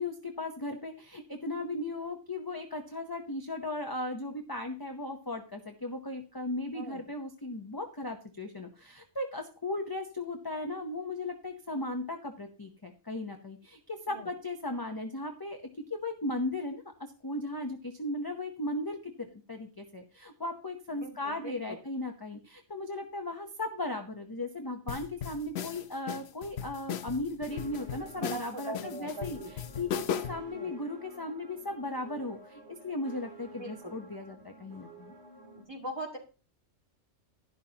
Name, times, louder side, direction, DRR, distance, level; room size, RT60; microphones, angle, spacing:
voice 1, 0.0-29.4 29.8-35.1, left 2 dB, 20° left, 4 dB, 0.8 m, -37 dB
voice 2, 20.9-21.8 28.2-29.5 30.5-30.8 33.5-34.0 35.6-36.2, right 2 dB, 20° right, 1 dB, 2.0 m, -41 dB
sound 1, 24.9-30.5, left 9 dB, 65° left, 0.9 m, -37 dB
sound 2, 27.5-35.6, right 4 dB, 65° right, 2.1 m, -52 dB
11.5 x 11.0 x 2.9 m, 0.35 s
omnidirectional pair, 1.2 m